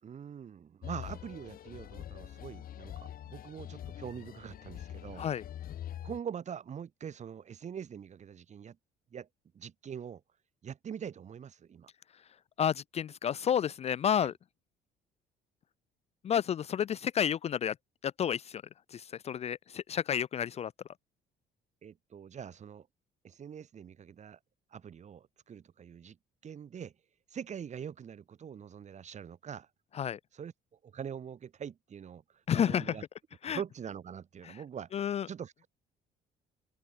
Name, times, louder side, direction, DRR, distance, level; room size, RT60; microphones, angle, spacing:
voice 1, 0.0-5.2 6.0-8.8 9.1-9.3 9.5-10.2 10.6-11.9 14.2-14.3 21.8-22.9 23.2-24.4 24.7-26.2 26.4-26.9 27.3-29.7 30.3-30.5 30.8-33.0 33.4-34.9 35.3-35.7, right 8 dB, 45° right, 4.5 m, -43 dB
sound 1, 0.8-6.2, left 11 dB, 60° left, 7.5 m, -44 dB
voice 2, 12.6-14.3 16.2-17.7 18.0-18.6 18.9-20.7 30.0-30.2 32.5-32.9 33.4-33.6 34.5-34.6 34.9-35.3, left 9 dB, 40° left, 0.4 m, -30 dB
cardioid pair, 110°, 17 cm